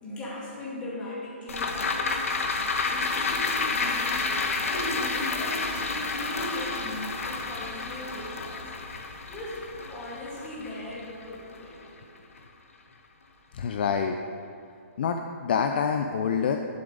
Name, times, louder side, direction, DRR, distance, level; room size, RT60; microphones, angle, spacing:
voice 1, 0.0-2.6 2.9-4.2 4.6-8.6 9.3-12.2, left 1 dB, 15° left, -6 dB, 2.0 m, -38 dB
sound 1, 1.5-12.0 12.4-12.5, left 4 dB, 80° left, 1.1 m, -30 dB
voice 2, 13.5-14.2 15.0-16.6, left 6 dB, 45° left, 6 dB, 0.4 m, -26 dB
11.5 x 7.0 x 3.9 m, 2.4 s
hypercardioid pair, 165°, 7 cm